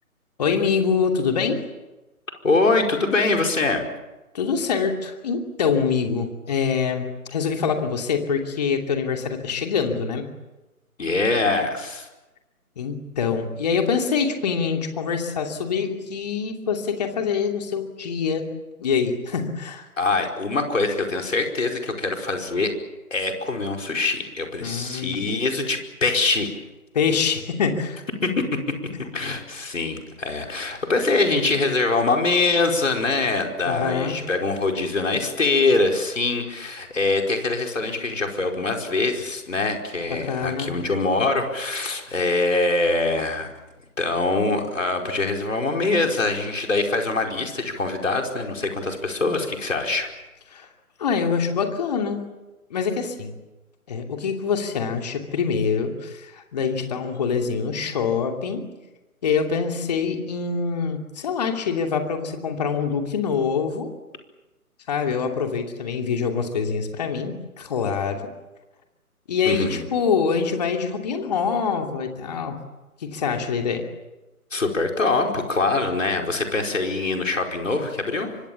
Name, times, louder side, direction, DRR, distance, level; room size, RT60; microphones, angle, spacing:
voice 1, 0.4-1.6 4.3-10.2 12.8-18.4 18.8-19.8 24.6-25.3 26.9-28.0 33.6-34.2 40.2-40.7 50.5-50.7 51.0-52.2 52.7-53.3 53.9-58.6 59.2-63.9 64.9-68.2 69.3-72.6 73.0-73.8, left 6 dB, 30° left, 4 dB, 2.7 m, -25 dB
voice 2, 2.4-3.9 11.0-12.1 20.0-22.7 23.1-26.5 28.2-28.6 29.1-43.5 44.0-50.1 69.4-69.9 74.5-78.3, left 3 dB, 60° left, 2 dB, 5.0 m, -23 dB
27.5 x 24.5 x 7.3 m, 1.1 s
figure-of-eight pair, 145°, 44 cm